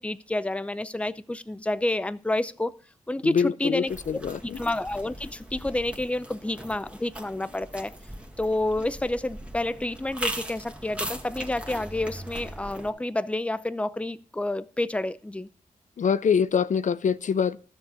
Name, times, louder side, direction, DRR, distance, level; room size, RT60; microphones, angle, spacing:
voice 1, 0.0-2.8 3.1-7.9 8.4-15.5, left 2 dB, 10° left, 0.6 m, -29 dB
voice 2, 3.2-4.6 16.0-17.6, left 6 dB, 65° left, 0.5 m, -24 dB
sound 1, 3.9-12.9, right 1 dB, 10° right, 1.9 m, -39 dB
12.5 x 7.3 x 5.6 m
cardioid pair, 65°, 14 cm